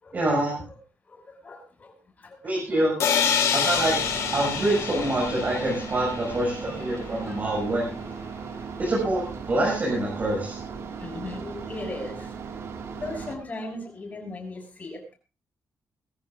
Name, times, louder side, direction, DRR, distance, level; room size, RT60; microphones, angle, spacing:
voice 1, 0.1-0.6 2.4-2.9 3.5-7.9 8.8-10.6, right 1 dB, 35° right, -3 dB, 7.1 m, -26 dB
voice 2, 1.1-1.9 2.2-2.4 3.2-3.4 7.4-7.6 8.5-8.7 10.7-12.3 12.9-15.1, left 2 dB, 30° left, 3 dB, 6.4 m, -38 dB
sound 1, 3.0-6.8, left 7 dB, 90° left, 4.1 m, -27 dB
sound 2, 3.7-13.4, right 5 dB, 65° right, 2.2 m, -37 dB
22.5 x 14.5 x 2.6 m, 0.32 s
cardioid pair, 120°, 5 cm